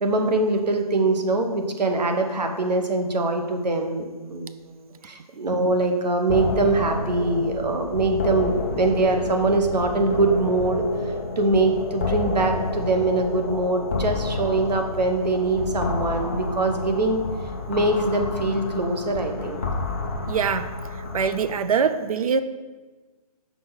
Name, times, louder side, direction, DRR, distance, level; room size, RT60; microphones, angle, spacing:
voice 1, 0.0-10.8 11.4-17.2 17.7-19.6, right 2 dB, 85° right, 4 dB, 1.2 m, -23 dB
sound 1, 6.3-21.5, left 3 dB, 20° left, 0.4 m, -30 dB
voice 2, 20.3-20.7 21.1-22.4, right 6 dB, 60° right, 11 dB, 0.5 m, -23 dB
6.2 x 4.6 x 5.6 m, 1.3 s
hypercardioid pair, 170°, 21 cm